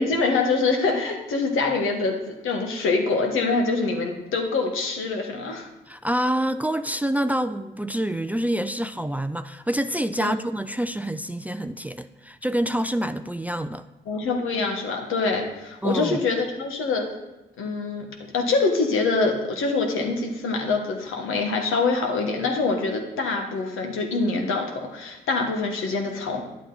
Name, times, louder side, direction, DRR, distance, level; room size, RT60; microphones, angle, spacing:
voice 1, 0.0-5.7 10.2-10.3 14.1-17.1 17.6-18.1 18.3-26.4, left 3 dB, 80° left, 2 dB, 1.4 m, -25 dB
voice 2, 5.9-13.8 15.8-16.2, right 1 dB, 5° right, 11 dB, 0.4 m, -27 dB
10.0 x 8.1 x 4.0 m, 1.0 s
supercardioid pair, 60°, 21 cm